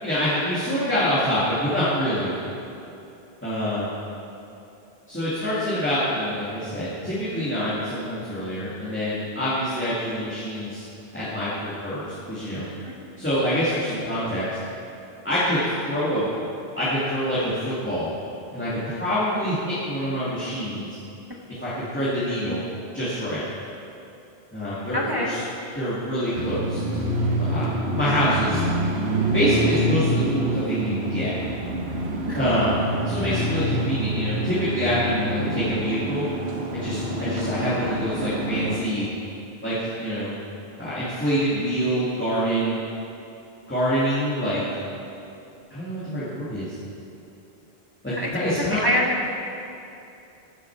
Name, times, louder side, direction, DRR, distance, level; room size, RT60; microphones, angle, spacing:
voice 1, 0.0-2.3 3.4-3.9 5.1-10.8 11.1-12.6 13.2-14.4 15.2-16.3 16.8-18.1 18.5-20.9 21.6-22.6 22.9-23.4 24.5-25.4 25.7-28.6 29.3-31.3 32.3-32.8 33.0-36.3 36.7-39.0 39.6-40.3 40.8-42.8 43.7-44.6 45.7-46.7 48.0-48.8, equal, 10° left, -12 dB, 2.1 m, -26 dB
voice 2, 24.9-25.3 32.3-32.4 37.2-37.5 48.2-48.3 48.7-49.1, left 1 dB, 25° right, -2 dB, 0.9 m, -25 dB
sound 1, 26.3-38.8, right 1 dB, 90° right, 1.4 m, -26 dB
15.0 x 6.8 x 4.7 m, 2.8 s
omnidirectional pair, 1.1 m